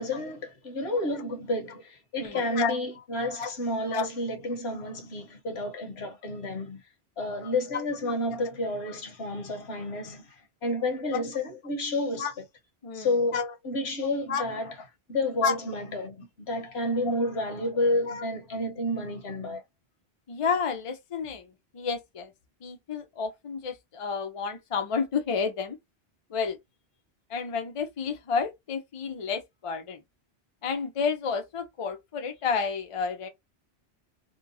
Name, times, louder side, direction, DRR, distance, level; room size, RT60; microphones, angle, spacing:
voice 1, 0.0-6.8 7.2-12.4 12.9-14.8 15.1-19.6, left 1 dB, 75° left, 1.2 m, -30 dB
voice 2, 2.2-2.8 3.4-3.5 3.9-4.1 12.2-12.3 12.8-13.1 13.3-13.4 14.3-14.4 15.4-15.5 18.1-18.3 20.3-21.5 21.7-22.3 22.6-25.8 26.3-26.6 27.3-30.0 30.6-33.3, left 5 dB, 40° left, 0.5 m, -30 dB
2.9 x 2.2 x 2.5 m
omnidirectional pair, 1.1 m